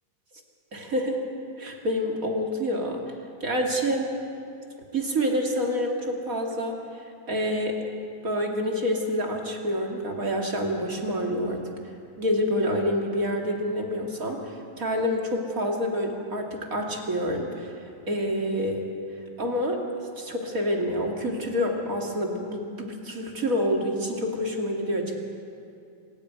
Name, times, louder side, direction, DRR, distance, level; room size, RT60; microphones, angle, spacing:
voice 1, 0.7-1.2 1.6-3.0 3.4-4.1 4.9-6.8 7.3-7.8 8.2-11.6 12.2-17.7 18.1-18.9 19.4-19.8 20.2-25.2, equal, 30° right, 1 dB, 2.1 m, -27 dB
25.5 x 14.0 x 9.4 m, 2.5 s
omnidirectional pair, 3.9 m